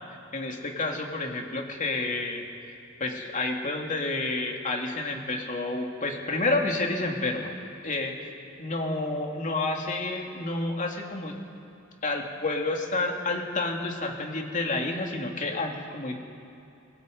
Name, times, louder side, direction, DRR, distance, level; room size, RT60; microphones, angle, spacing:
voice 1, 0.3-2.4 3.0-7.5 7.8-8.3 8.6-11.4 12.0-16.1, left 2 dB, 40° left, 1 dB, 2.8 m, -29 dB
27.5 x 22.5 x 5.4 m, 2.6 s
head